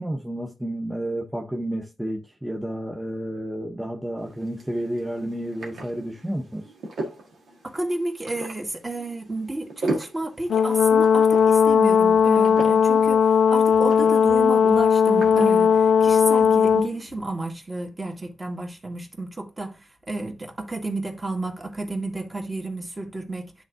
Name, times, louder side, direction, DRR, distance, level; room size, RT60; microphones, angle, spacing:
voice 1, 0.0-6.6, right 1 dB, 5° right, 0.7 m, -31 dB
sound 1, 4.2-17.1, right 2 dB, 85° right, 1.5 m, -38 dB
voice 2, 7.6-23.5, right 2 dB, 30° right, 1.8 m, -31 dB
Brass instrument, 10.5-16.9, left 7 dB, 85° left, 0.4 m, -17 dB
10.5 x 3.5 x 2.5 m
cardioid pair, 70°, 0 cm